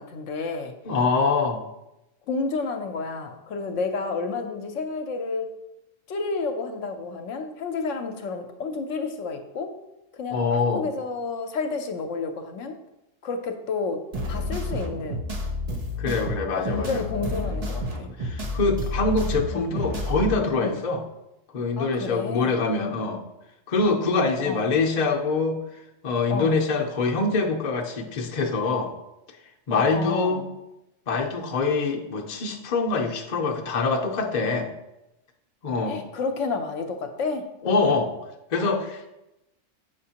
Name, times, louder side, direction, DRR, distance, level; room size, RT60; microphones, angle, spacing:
voice 1, 0.0-0.7 2.3-5.5 6.1-9.8 10.2-12.7 13.2-14.0 14.3-15.2 16.6-18.1 19.5-19.7 20.6-20.8 21.8-22.5 24.4-24.7 26.3-26.6 29.7-30.5 35.9-37.4, left 4 dB, 75° left, 6 dB, 0.9 m, -30 dB
voice 2, 0.8-1.6 10.3-10.9 16.0-17.0 18.2-21.0 21.5-23.2 23.7-25.6 26.0-28.9 29.7-30.4 31.1-34.7 35.6-36.0 37.6-38.1 38.5-39.1, left 3 dB, 45° left, 1 dB, 0.6 m, -24 dB
sound 1, 14.1-20.4, left 1 dB, 50° right, 0.4 m, -30 dB
6.9 x 5.2 x 2.8 m, 0.92 s
omnidirectional pair, 1.3 m